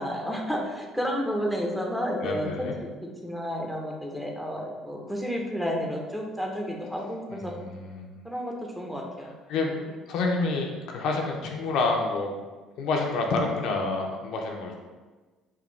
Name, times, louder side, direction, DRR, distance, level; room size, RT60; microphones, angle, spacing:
voice 1, 0.0-2.7 3.0-7.5 8.2-9.3, equal, 5° right, 0 dB, 0.8 m, -31 dB
voice 2, 2.2-2.8 7.3-8.1 9.5-9.8 10.1-12.3 12.8-14.7, left 3 dB, 60° left, 1 dB, 0.5 m, -28 dB
5.0 x 2.5 x 3.2 m, 1.3 s
figure-of-eight pair, 50°, 0 cm